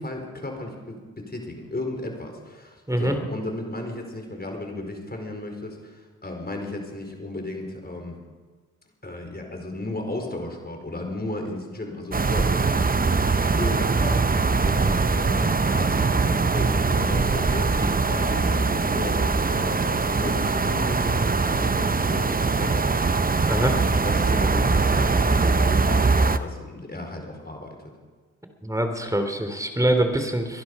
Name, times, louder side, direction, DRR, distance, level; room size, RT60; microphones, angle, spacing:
voice 1, 0.0-8.2 9.0-23.8 24.0-27.8, left 2 dB, 25° left, 3 dB, 4.8 m, -35 dB
sound 1, 12.1-26.4, right 4 dB, 25° right, 0.8 m, -22 dB
voice 2, 28.6-30.6, right 1 dB, 10° right, 6 dB, 3.2 m, -24 dB
23.0 x 11.0 x 5.6 m, 1.4 s
supercardioid pair, 50°, 36 cm